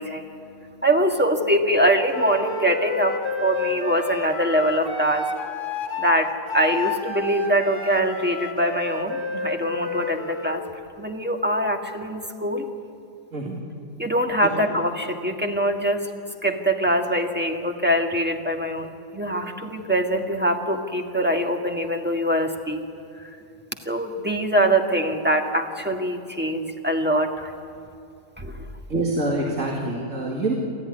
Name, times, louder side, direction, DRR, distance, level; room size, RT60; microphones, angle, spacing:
voice 1, 0.0-5.3 6.0-10.6 11.0-12.7 14.0-16.1 16.4-22.8 23.1-23.3 23.8-27.5 28.4-28.7, right 1 dB, 5° right, 3 dB, 1.5 m, -23 dB
Wind instrument woodwind instrument, 2.1-10.6, left 4 dB, 35° left, 1.6 m, -30 dB
voice 2, 13.3-13.7 14.4-14.5 28.9-30.5, right 2 dB, 55° right, -1 dB, 2.6 m, -26 dB
28.0 x 13.5 x 9.7 m, 2.6 s
omnidirectional pair, 1.6 m